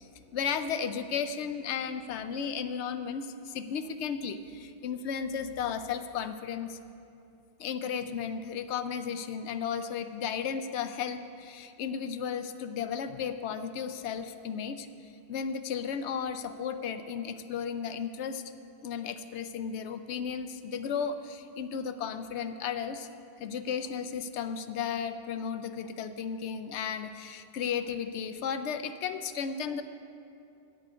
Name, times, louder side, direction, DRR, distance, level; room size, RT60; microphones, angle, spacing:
voice 1, 0.0-6.8 7.6-14.9 15.3-18.4 18.8-23.1 23.4-29.8, left 7 dB, 80° left, 10 dB, 0.9 m, -34 dB
8.9 x 7.7 x 8.3 m, 2.6 s
omnidirectional pair, 1.1 m